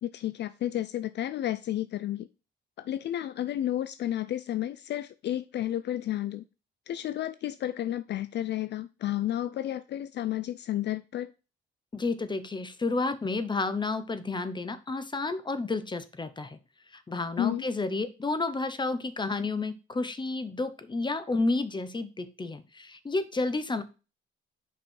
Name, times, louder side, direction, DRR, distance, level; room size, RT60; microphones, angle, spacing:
voice 1, 0.0-2.3 2.8-6.4 6.9-11.3 17.4-17.6, left 12 dB, 60° left, 0.5 m, -31 dB
voice 2, 11.9-16.6 16.9-23.8, left 3 dB, 25° left, 0.8 m, -31 dB
5.4 x 5.3 x 4.4 m
cardioid pair, 90°, 20 cm